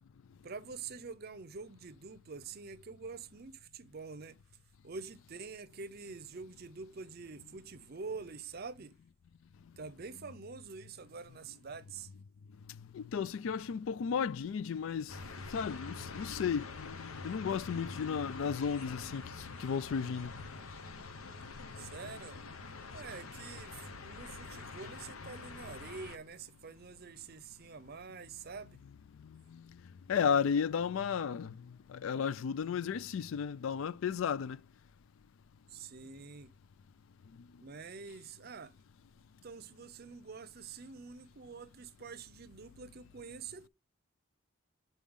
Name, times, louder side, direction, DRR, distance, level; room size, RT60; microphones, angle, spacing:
voice 1, 0.4-4.4 4.8-8.9 9.8-12.1 21.8-22.4 22.9-28.8 35.7-36.5 37.6-38.7 39.4-43.7, right 4 dB, 45° right, 0.6 m, -46 dB
voice 2, 12.9-15.1 15.5-19.2 19.6-20.3 29.5-29.6 30.1-31.5 31.9-34.6, left 7 dB, 65° left, 0.3 m, -33 dB
sound 1, 15.1-26.2, left 3 dB, 85° left, 0.9 m, -46 dB
8.6 x 4.1 x 3.6 m
head